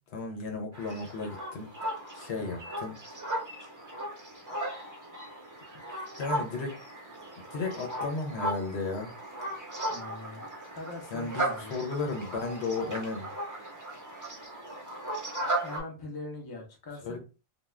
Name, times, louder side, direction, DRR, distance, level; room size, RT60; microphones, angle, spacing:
voice 1, 0.1-1.7 2.1-3.0 6.2-6.8 7.5-9.1 11.1-13.3 17.0-17.2, left 3 dB, 80° left, 3 dB, 1.0 m, -34 dB
sound 1, 0.7-15.8, right 1 dB, 20° right, 0.7 m, -36 dB
voice 2, 9.9-10.4 10.7-11.9 15.6-17.2, left 2 dB, 25° left, 1 dB, 0.6 m, -42 dB
2.4 x 2.3 x 3.1 m, 0.32 s
omnidirectional pair, 1.1 m